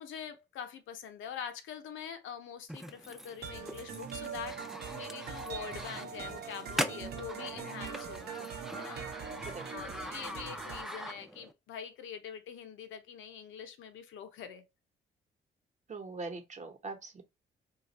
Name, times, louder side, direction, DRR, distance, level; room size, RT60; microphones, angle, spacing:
voice 1, 0.0-4.6 4.9-9.1 9.7-14.7, left 8 dB, 80° left, 0.7 m, -44 dB
sound 1, 2.7-11.5, equal, ahead, 0.4 m, -42 dB
sound 2, 3.4-10.8, right 6 dB, 55° right, 0.7 m, -42 dB
voice 2, 15.9-17.2, right 3 dB, 35° right, 1.0 m, -41 dB
2.4 x 2.3 x 4.1 m
cardioid pair, 90°, 20 cm